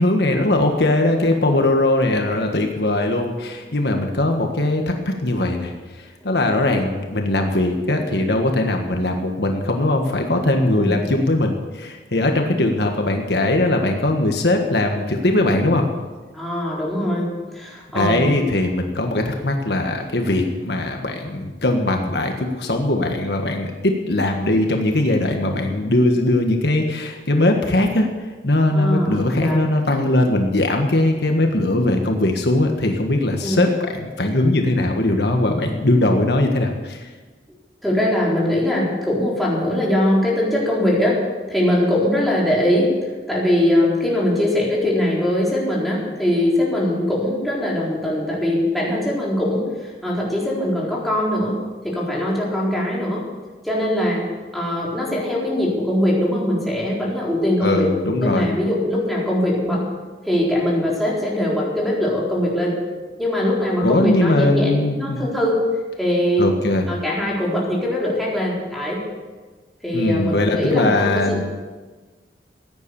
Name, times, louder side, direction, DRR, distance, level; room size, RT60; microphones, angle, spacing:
voice 1, 0.0-15.9 17.9-28.1 28.4-37.1 57.6-58.5 63.8-65.2 66.4-66.9 69.9-71.4, left 1 dB, 65° left, 3 dB, 1.5 m, -20 dB
voice 2, 16.3-18.3 28.7-29.6 33.4-33.6 37.8-41.2 41.5-51.6 51.8-53.2 53.6-54.2 54.5-57.9 58.2-59.9 60.2-62.8 63.2-65.6 66.0-66.5 66.9-69.0 69.8-71.4, left 1 dB, ahead, -5 dB, 4.1 m, -21 dB
15.5 x 9.9 x 7.1 m, 1.3 s
head